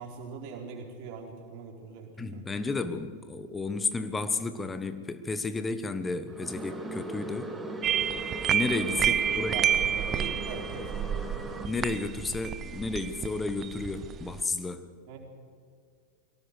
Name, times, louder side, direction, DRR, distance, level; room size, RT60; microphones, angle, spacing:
voice 1, 0.0-2.5 9.1-11.3 15.1-15.2, right 5 dB, 45° right, 1 dB, 4.3 m, -41 dB
voice 2, 2.2-7.5 8.5-9.7 11.6-14.9, left 3 dB, 15° left, 11 dB, 1.3 m, -32 dB
sound 1, 6.3-11.7, right 2 dB, 10° right, 2.1 m, -38 dB
sound 2, 7.8-14.4, right 9 dB, 30° right, 0.7 m, -29 dB
23.0 x 18.0 x 6.6 m, 2.1 s
figure-of-eight pair, 90°, 0 cm